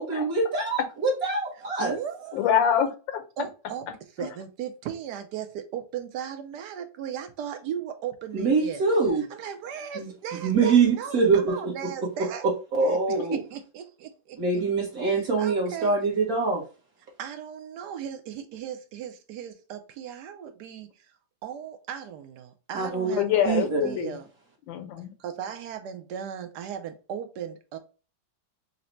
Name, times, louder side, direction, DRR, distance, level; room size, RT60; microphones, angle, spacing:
voice 1, 0.0-1.9 8.3-9.2 9.9-10.1 10.4-11.5 12.7-13.4 14.4-16.6 22.7-23.1 23.4-24.0, right 4 dB, 55° right, 1.2 m, -24 dB
voice 2, 1.8-2.4 3.4-3.9 4.2-8.8 9.3-12.4 12.9-14.4 15.1-16.0 17.2-21.1 21.4-24.3 25.2-27.8, right 9 dB, 75° right, 1.0 m, -37 dB
voice 3, 2.3-3.2 23.2-24.2 24.7-25.1, left 9 dB, 75° left, 1.4 m, -25 dB
4.0 x 2.1 x 4.3 m
omnidirectional pair, 2.1 m